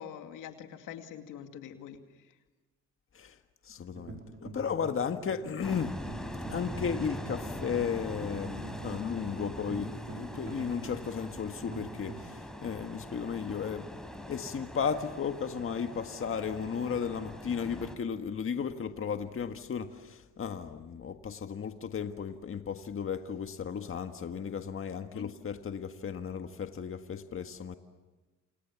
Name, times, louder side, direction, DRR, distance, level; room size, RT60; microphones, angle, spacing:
voice 1, 0.0-2.0 25.1-25.3, left 9 dB, 90° left, 2.4 m, -44 dB
voice 2, 3.6-6.0 6.5-13.9 14.3-27.8, left 7 dB, 45° left, 1.7 m, -35 dB
sound 1, 3.9-12.3, right 4 dB, 40° right, 5.3 m, -46 dB
sound 2, 5.6-18.0, left 1 dB, ahead, 4.3 m, -42 dB
28.5 x 28.0 x 7.2 m
cardioid pair, 90°, 30 cm